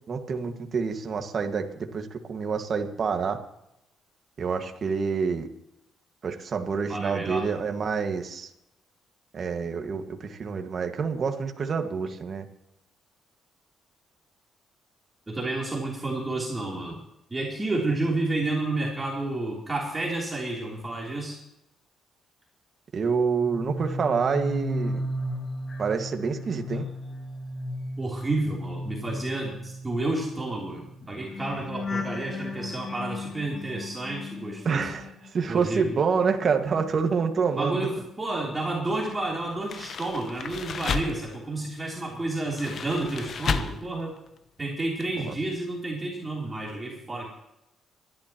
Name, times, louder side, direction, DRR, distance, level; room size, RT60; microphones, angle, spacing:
voice 1, 0.1-1.7 1.9-3.4 4.4-5.5 6.2-8.5 9.3-12.4 22.9-25.0 25.8-26.8 34.6-37.9 45.2-45.3, right 5 dB, 50° right, 5 dB, 1.7 m, -27 dB
voice 2, 6.9-7.5 15.3-17.0 17.3-21.4 26.7-26.8 28.0-34.9 35.5-35.9 37.6-44.2 44.6-47.3, right 2 dB, 20° right, -3 dB, 3.3 m, -30 dB
sound 1, 23.3-35.6 35.9-38.0 38.3-38.7, left 1 dB, 35° left, 1.7 m, -36 dB
sound 2, 39.6-41.4 42.5-43.9 44.2-44.4 45.0-45.1 45.3-45.4, left 6 dB, 55° left, 0.9 m, -32 dB
25.0 x 12.0 x 3.0 m, 0.84 s
cardioid pair, 90°, 0 cm